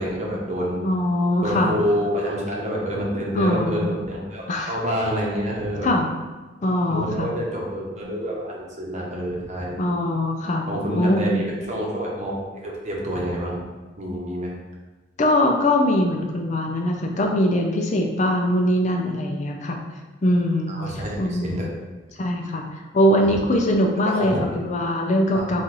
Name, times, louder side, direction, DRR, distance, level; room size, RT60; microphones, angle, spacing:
voice 1, 0.0-0.8 1.4-5.9 6.9-9.8 10.7-13.6 14.0-14.5 20.7-21.7 23.2-23.4 24.0-24.4 25.3-25.4, equal, 35° right, -3 dB, 0.9 m, -27 dB
voice 2, 0.8-1.7 3.3-3.9 4.5-4.7 5.8-6.1 6.6-7.3 9.8-10.7 11.0-11.4 15.2-19.8 20.2-20.8 21.2-21.6 22.2-22.6 22.9-25.6, left 1 dB, 40° left, 2 dB, 0.4 m, -22 dB
4.2 x 2.4 x 4.6 m, 1.2 s
head